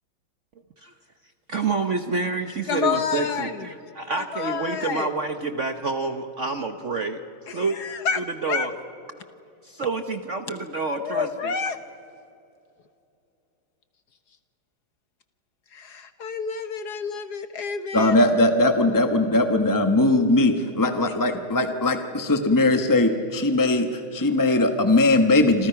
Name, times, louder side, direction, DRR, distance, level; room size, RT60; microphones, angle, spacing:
voice 1, 1.5-3.5 4.0-7.2 7.5-7.8 8.2-8.7 9.6-11.5, right 3 dB, 50° right, 7 dB, 1.0 m, -28 dB
voice 2, 2.7-3.6 4.2-5.1 7.5-8.2 8.5-8.7 11.0-11.8 15.7-18.2, left 6 dB, 55° left, 10 dB, 1.4 m, -29 dB
voice 3, 17.9-25.7, left 2 dB, 15° left, 6 dB, 0.7 m, -20 dB
28.0 x 26.5 x 5.8 m, 2.7 s
omnidirectional pair, 2.3 m